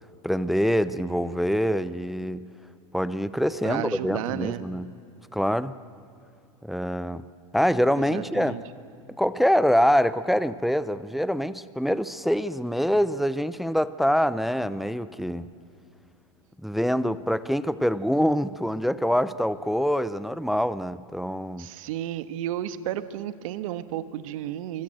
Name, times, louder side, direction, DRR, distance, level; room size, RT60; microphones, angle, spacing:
voice 1, 0.2-2.4 2.9-4.9 5.3-5.8 6.6-7.2 7.5-8.6 9.2-15.5 16.6-21.7, equal, ahead, 15 dB, 0.6 m, -25 dB
voice 2, 3.6-4.6 8.1-8.6 21.6-24.8, right 12 dB, 70° right, 12 dB, 1.5 m, -32 dB
25.5 x 24.0 x 7.8 m, 2.6 s
supercardioid pair, 130°, 18 cm